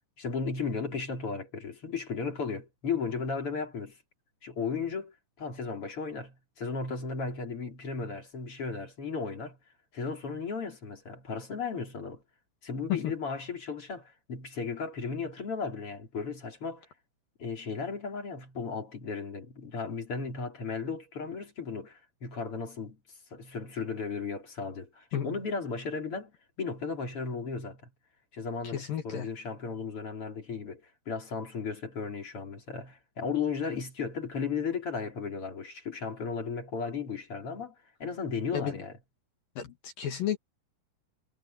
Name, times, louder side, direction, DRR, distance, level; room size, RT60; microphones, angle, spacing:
voice 1, 0.2-4.0 4.4-9.6 9.9-12.2 12.6-16.9 17.4-23.0 23.3-26.3 26.6-27.9 28.3-38.9, left 5 dB, 30° left, 3.7 m, -35 dB
voice 2, 28.7-29.3 38.5-38.8 39.6-40.4, left 10 dB, 60° left, 2.7 m, -32 dB
omnidirectional pair, 6.0 m